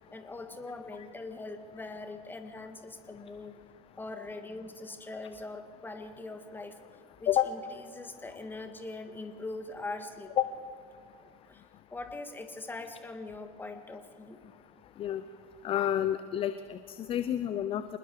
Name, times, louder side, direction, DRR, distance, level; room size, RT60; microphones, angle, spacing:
voice 1, 0.1-3.6 4.0-6.8 7.2-7.6 7.9-10.4 11.5-11.6 11.9-14.4, left 2 dB, 10° left, 7 dB, 2.0 m, -42 dB
voice 2, 15.6-18.0, left 11 dB, 30° left, 11 dB, 0.8 m, -29 dB
26.0 x 20.0 x 4.9 m, 2.1 s
figure-of-eight pair, 85°, 19 cm